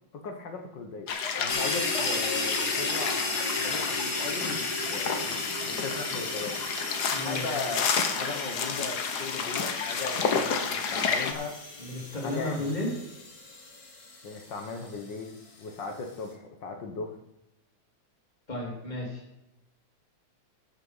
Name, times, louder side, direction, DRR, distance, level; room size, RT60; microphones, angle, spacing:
voice 1, 0.1-4.6 4.9-6.6 7.2-11.6 12.2-12.9 14.2-17.2, left 4 dB, 50° left, 5 dB, 1.5 m, -38 dB
sound 1, 1.1-11.3, left 6 dB, 80° left, 0.8 m, -31 dB
sound 2, 1.5-15.1, left 2 dB, 35° left, 2.0 m, -35 dB
voice 2, 7.1-7.6 11.8-12.9 18.5-19.2, left 2 dB, 15° left, -2 dB, 3.3 m, -33 dB
14.5 x 7.0 x 5.6 m, 0.90 s
omnidirectional pair, 3.3 m